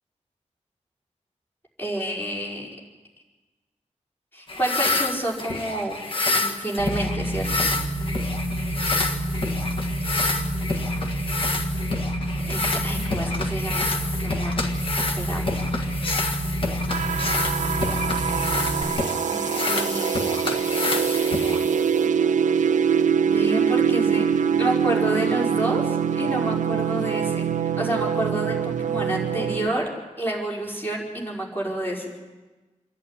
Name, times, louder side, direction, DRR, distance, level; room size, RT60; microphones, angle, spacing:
voice 1, 1.8-2.7 4.3-6.0 6.3-7.7 12.4-14.6 15.2-15.6 19.2-20.4 23.2-24.3 24.6-29.8 30.2-32.1, right 1 dB, 15° left, -3 dB, 4.9 m, -29 dB
sound 1, 4.5-22.1, left 3 dB, 45° left, 1.7 m, -28 dB
sound 2, 6.8-18.8, right 1 dB, 60° left, 4.0 m, -29 dB
sound 3, 16.9-29.7, right 7 dB, 85° right, 0.6 m, -24 dB
27.0 x 11.5 x 9.8 m, 1.2 s
wide cardioid pair, 175°, 13 cm